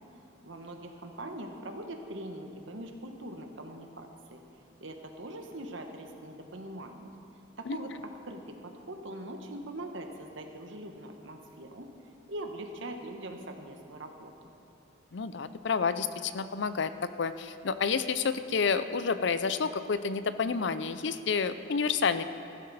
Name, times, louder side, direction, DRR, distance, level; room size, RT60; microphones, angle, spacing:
voice 1, 0.4-4.4 4.8-7.1 7.6-7.9 8.2-11.9 12.3-14.5, right 1 dB, 65° right, 4 dB, 1.2 m, -42 dB
voice 2, 15.1-16.9 17.2-22.2, left 5 dB, 60° left, 12 dB, 0.5 m, -29 dB
14.5 x 12.5 x 4.2 m, 3.0 s
head